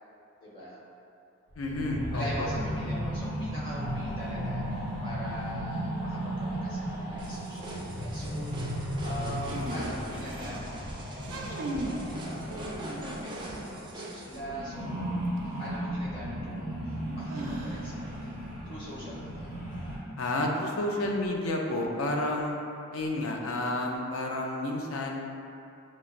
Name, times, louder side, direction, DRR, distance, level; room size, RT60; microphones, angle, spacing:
voice 1, 0.4-0.8 2.1-10.7 11.1-15.1 15.6-18.3 18.6-19.5, equal, 25° left, -9 dB, 1.0 m, -42 dB
sound 1, 1.5-13.9 14.2-20.0, equal, 55° left, 1.0 m, -35 dB
voice 2, 1.6-2.5 20.2-22.5 22.9-25.2, left 1 dB, 75° left, 0 dB, 0.5 m, -30 dB
sound 2, 7.2-14.4, right 1 dB, 20° right, 0.3 m, -42 dB
sound 3, 9.4-10.6 11.1-12.0 12.5-13.4 15.4-15.5 17.3-18.1, right 1 dB, 85° right, 0.4 m, -38 dB
5.9 x 2.0 x 2.5 m, 2.6 s
head